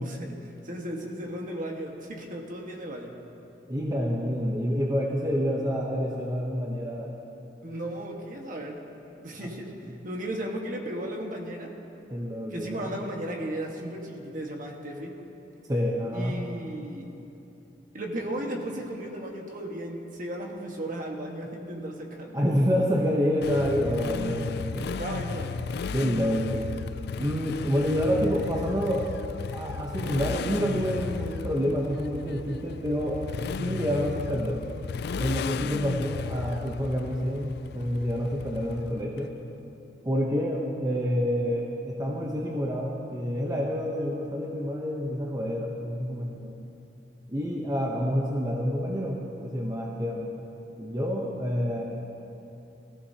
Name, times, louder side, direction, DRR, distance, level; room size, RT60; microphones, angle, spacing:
voice 1, 0.0-3.1 7.6-8.8 9.2-11.7 12.5-15.2 15.6-15.7 16.1-17.1 17.9-22.4 24.8-25.7, right 1 dB, 50° right, 1 dB, 1.5 m, -35 dB
voice 2, 3.7-7.1 12.1-12.8 15.7-16.4 22.3-24.9 25.9-26.6 27.2-29.1 29.5-33.2 33.6-34.6 35.2-39.3 40.0-46.6 47.3-50.3 50.8-51.8, equal, 20° right, -2 dB, 0.9 m, -28 dB
Motorcycle, 23.4-39.2, left 5 dB, 60° left, 0.3 m, -35 dB
19.0 x 14.5 x 2.8 m, 2.9 s
head